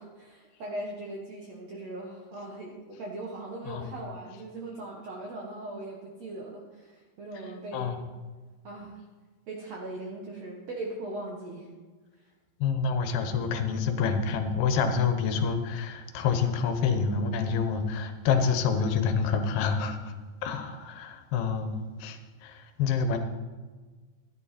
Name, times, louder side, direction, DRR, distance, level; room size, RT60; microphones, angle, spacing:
voice 1, 0.0-8.0 8.6-9.0 9.5-11.7, right 2 dB, 65° right, -1 dB, 1.7 m, -39 dB
voice 2, 7.7-8.0 12.6-20.1 20.4-23.2, left 5 dB, 75° left, 7 dB, 2.8 m, -27 dB
13.5 x 11.0 x 4.2 m, 1.3 s
omnidirectional pair, 4.6 m